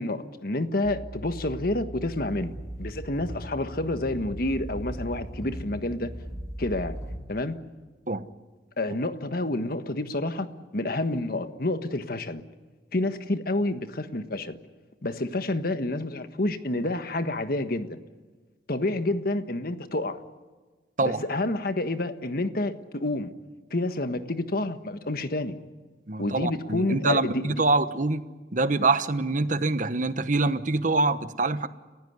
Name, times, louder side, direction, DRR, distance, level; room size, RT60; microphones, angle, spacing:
voice 1, 0.0-2.5 2.8-6.1 6.6-7.0 7.3-7.6 8.8-10.5 10.7-12.4 12.9-14.6 15.0-18.0 18.7-20.2 21.0-23.3 23.7-25.5 26.2-27.6, left 2 dB, 55° left, 9 dB, 1.5 m, -29 dB
sound 1, 0.8-7.0, right 1 dB, 10° right, 2.1 m, -41 dB
sound 2, 2.1-7.2, equal, 20° left, 7.4 m, -40 dB
voice 2, 26.1-28.2 28.5-31.7, right 3 dB, 45° right, 12 dB, 1.1 m, -25 dB
29.5 x 15.5 x 9.6 m, 1.3 s
head